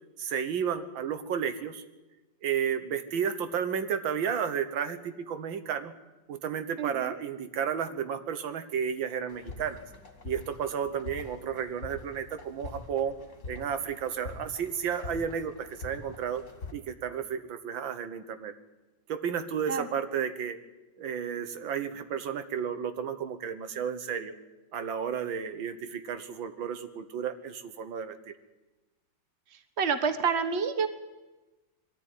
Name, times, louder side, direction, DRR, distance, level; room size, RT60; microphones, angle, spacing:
voice 1, 0.2-1.8 2.4-5.9 6.3-9.8 10.2-13.2 13.5-16.4 16.7-18.5 19.1-20.6 21.0-24.3 24.7-28.3, right 7 dB, 85° right, 10 dB, 1.9 m, -32 dB
voice 2, 6.8-7.1 19.7-19.9 29.8-30.9, right 6 dB, 35° right, 9 dB, 1.5 m, -28 dB
sound 1, 9.3-16.7, left 3 dB, 40° left, 2.3 m, -45 dB
22.0 x 14.0 x 9.7 m, 1.1 s
omnidirectional pair, 2.1 m